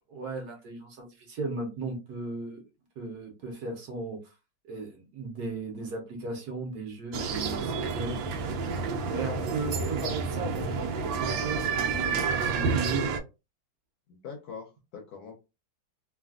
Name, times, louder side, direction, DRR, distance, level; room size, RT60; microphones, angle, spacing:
voice 1, 0.1-2.6 3.0-4.2 4.6-8.2 9.1-13.1, right 3 dB, 60° right, 1 dB, 1.2 m, -36 dB
sound 1, 7.1-13.2, right 5 dB, 80° right, 1.3 m, -29 dB
voice 2, 14.1-15.3, left 6 dB, 70° left, 2 dB, 1.0 m, -43 dB
3.3 x 2.4 x 2.3 m, 0.27 s
omnidirectional pair, 2.1 m